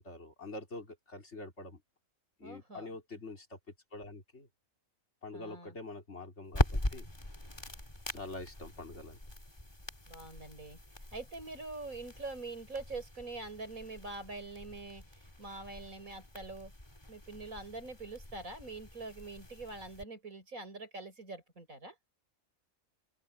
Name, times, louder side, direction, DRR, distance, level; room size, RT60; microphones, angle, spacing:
voice 1, 0.0-1.8 2.4-3.6 3.9-4.5 5.2-7.1 8.1-9.2, left 2 dB, 55° left, 4.0 m, -45 dB
voice 2, 2.4-2.9 5.3-5.8 10.1-10.8 11.1-16.7 17.1-21.9, right 3 dB, 80° right, 6.6 m, -44 dB
sound 1, 6.5-20.0, left 1 dB, 20° left, 2.8 m, -41 dB
open air
omnidirectional pair, 1.4 m